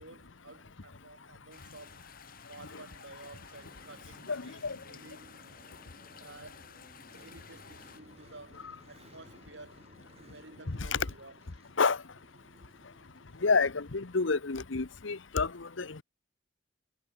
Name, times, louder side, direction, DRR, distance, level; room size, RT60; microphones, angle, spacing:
voice 1, 0.0-2.1 2.5-5.4 6.2-6.7 7.1-9.8 10.2-11.4, right 2 dB, 75° right, 6.1 m, -52 dB
sound 1, 1.5-8.0, left 6 dB, 50° left, 5.3 m, -53 dB
sound 2, 3.5-13.8, right 1 dB, 35° right, 5.5 m, -59 dB
voice 2, 4.3-4.8 10.7-11.0 11.8-12.0 13.4-16.0, left 4 dB, 80° left, 1.0 m, -29 dB
head